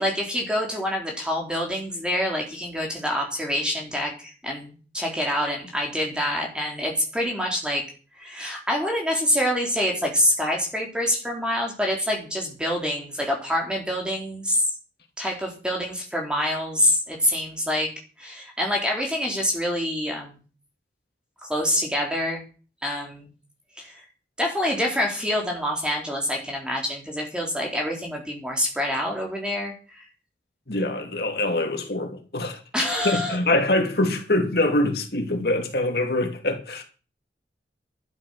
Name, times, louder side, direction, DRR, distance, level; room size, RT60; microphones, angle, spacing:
voice 1, 0.0-7.9 8.1-14.7 15.2-17.9 18.2-20.4 21.4-22.4 22.8-23.3 23.8-24.0 24.4-30.0 32.7-33.4, left 1 dB, 5° right, 3.9 m, -26 dB
voice 2, 30.7-32.6 33.0-36.8, left 1 dB, 60° left, 2.7 m, -24 dB
12.0 x 11.5 x 6.4 m
head